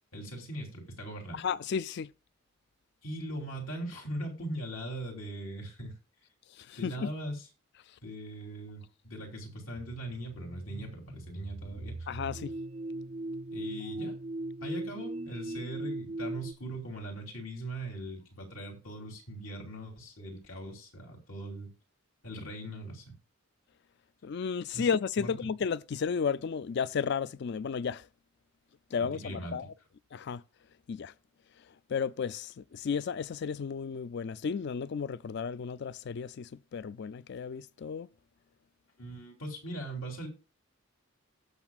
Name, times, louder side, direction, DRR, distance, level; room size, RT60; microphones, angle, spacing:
voice 1, 0.1-1.4 3.0-5.9 6.8-7.5 8.0-12.1 13.5-14.2 14.6-21.7 22.2-23.1 24.7-24.9 25.2-25.3 29.0-29.5 39.0-40.3, right 1 dB, 75° left, 3.1 m, -40 dB
voice 2, 1.3-2.1 6.6-7.1 12.1-12.5 24.2-28.1 28.9-29.7 30.1-30.4 30.9-31.1 31.9-38.1, left 6 dB, 55° left, 0.4 m, -33 dB
sound 1, 9.7-16.5, right 2 dB, 35° right, 0.4 m, -39 dB
18.0 x 6.2 x 2.4 m
head